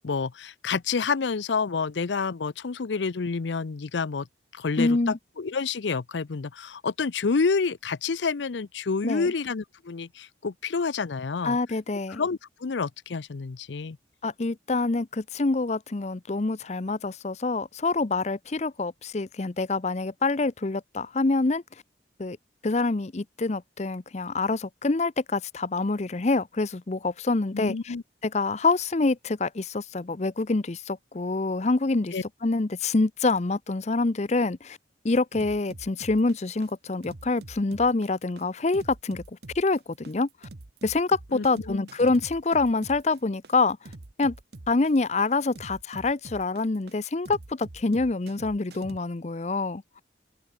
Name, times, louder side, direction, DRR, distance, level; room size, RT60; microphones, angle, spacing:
voice 1, 0.0-4.3 4.5-11.6 12.1-14.0 27.5-28.0 32.1-32.2 41.3-41.9, left 4 dB, 85° left, 0.6 m, -29 dB
voice 2, 4.8-5.1 9.0-9.3 11.4-12.2 14.2-21.6 22.2-22.4 22.6-27.9 28.2-32.2 32.4-34.8 35.0-39.2 39.5-40.3 40.8-43.8 44.2-44.3 44.7-49.8, left 3 dB, 40° left, 0.6 m, -26 dB
sound 1, 35.3-49.0, right 2 dB, 60° right, 1.1 m, -45 dB
open air
head